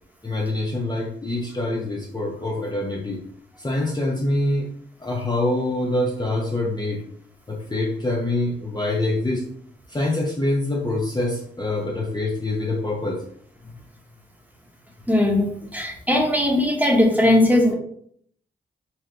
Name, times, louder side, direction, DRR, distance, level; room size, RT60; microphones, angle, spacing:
voice 1, 0.2-3.2 3.6-4.7 5.0-7.0 7.5-9.4 9.9-13.2, left 2 dB, 20° left, -2 dB, 0.7 m, -25 dB
voice 2, 15.1-17.7, left 1 dB, 10° right, -1 dB, 1.1 m, -19 dB
4.3 x 2.3 x 3.2 m, 0.64 s
cardioid pair, 50°, 21 cm